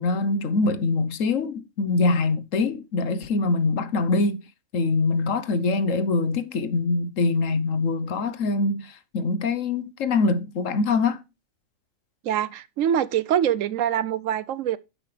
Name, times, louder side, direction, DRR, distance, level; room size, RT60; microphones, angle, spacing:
voice 1, 0.0-4.4 4.7-11.2, left 3 dB, 70° left, 1.3 m, -24 dB
voice 2, 12.2-14.8, right 10 dB, 70° right, 1.0 m, -24 dB
10.0 x 7.9 x 3.2 m
omnidirectional pair, 1.4 m